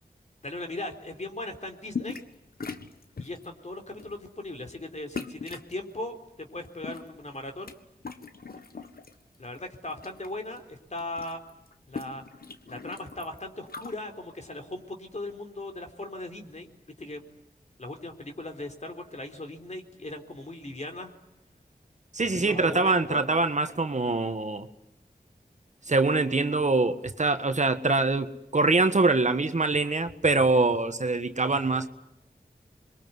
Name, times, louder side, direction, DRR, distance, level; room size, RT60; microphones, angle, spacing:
voice 1, 0.4-2.2 3.2-7.7 9.4-11.4 11.9-12.2 12.6-16.7 17.0-17.2 17.8-21.1 22.3-23.2, left 2 dB, 50° left, 4 dB, 3.9 m, -38 dB
sound 1, 1.9-2.3 2.6-3.5 4.0-4.2 5.1-5.7 6.6-7.7 8.0-9.1 9.5-10.3 10.6-10.7 10.9-13.9, left 5 dB, 75° left, 1.6 m, -39 dB
voice 2, 22.1-24.7 25.9-31.9, right 3 dB, 50° right, 8 dB, 1.5 m, -24 dB
27.0 x 22.5 x 9.6 m, 0.87 s
cardioid pair, 45°, 16 cm